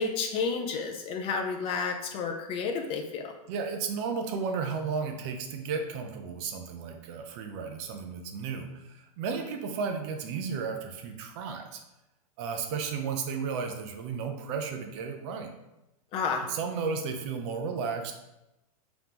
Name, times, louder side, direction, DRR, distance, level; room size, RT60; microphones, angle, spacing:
voice 1, 0.0-3.3 16.1-16.5, left 5 dB, 30° left, 3 dB, 0.5 m, -31 dB
voice 2, 3.5-11.8 12.4-15.5 16.5-18.1, right 5 dB, 50° right, 5 dB, 0.6 m, -33 dB
3.7 x 3.0 x 3.5 m, 0.92 s
supercardioid pair, 135°, 19 cm